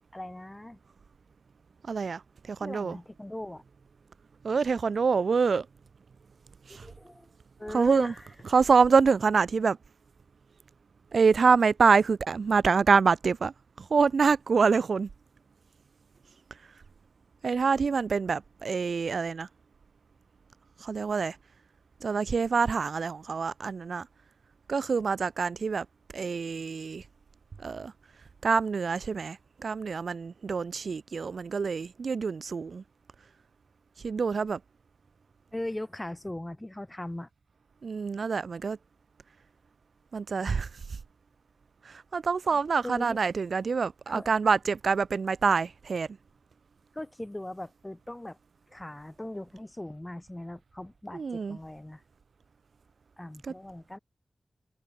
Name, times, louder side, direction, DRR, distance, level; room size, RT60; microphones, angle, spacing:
voice 1, 0.1-0.8 2.6-3.6 6.7-7.3 7.6-8.2 35.5-37.3 42.8-43.2 44.1-44.3 46.9-48.4 48.7-52.0 53.2-54.0, left 1 dB, 15° left, 6.4 m, -39 dB
voice 2, 1.8-2.2 2.5-3.0 4.4-5.7 6.7-6.9 7.7-8.1 8.4-9.8 11.1-15.1 17.4-19.5 20.8-21.4 22.0-24.1 24.7-25.9 26.1-27.0 27.6-27.9 28.4-32.8 34.0-34.6 37.8-38.8 40.1-40.7 41.8-46.1 51.1-51.6 53.4-53.5, right 5 dB, 80° right, 0.6 m, -26 dB
wide cardioid pair, 80°, 0 cm